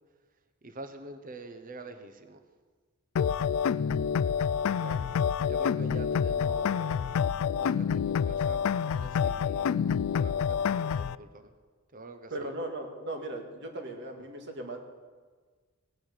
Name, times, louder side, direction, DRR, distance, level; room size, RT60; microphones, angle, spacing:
voice 1, 0.6-2.4 4.7-5.1 5.4-7.2 7.5-11.5 11.9-12.5, right 2 dB, 40° right, 8 dB, 1.1 m, -46 dB
sound 1, 3.2-11.2, left 7 dB, 75° left, 0.3 m, -28 dB
voice 2, 12.3-14.8, right 1 dB, 55° right, 3 dB, 2.1 m, -37 dB
18.0 x 9.5 x 6.8 m, 1.5 s
head